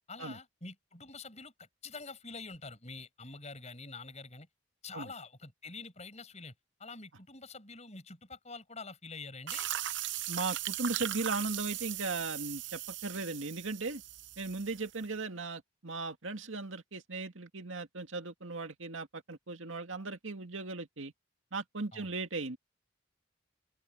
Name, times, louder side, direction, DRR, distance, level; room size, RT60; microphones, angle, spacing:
voice 1, 0.1-4.5 4.8-6.5 6.8-9.7 21.9-22.1, left 3 dB, 35° left, 7.2 m, -46 dB
sound 1, 9.5-15.0, right 13 dB, 60° right, 0.7 m, -38 dB
voice 2, 10.3-14.0 14.4-21.1 21.5-22.6, right 3 dB, 75° right, 2.1 m, -37 dB
open air
head